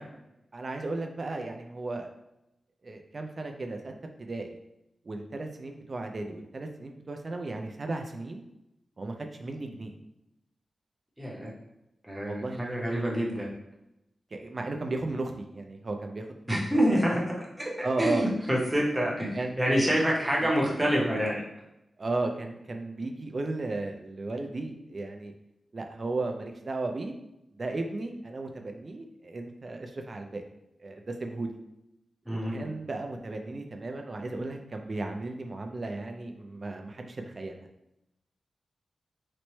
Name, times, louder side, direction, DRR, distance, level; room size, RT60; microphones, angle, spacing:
voice 1, 0.5-2.1 2.8-3.9 4.2-4.6 5.0-8.4 9.0-9.9 12.2-13.2 14.3-16.8 17.8-18.3 19.3-19.6 20.4-20.5 22.0-25.3 25.7-27.1 27.5-30.4 30.8-31.6 32.3-37.7, right 2 dB, 35° right, 4 dB, 0.3 m, -35 dB
voice 2, 11.2-11.5 12.1-13.5 16.5-21.4 32.3-32.7, equal, 10° right, -4 dB, 0.7 m, -27 dB
4.0 x 2.1 x 3.1 m, 0.87 s
wide cardioid pair, 170°, 0 cm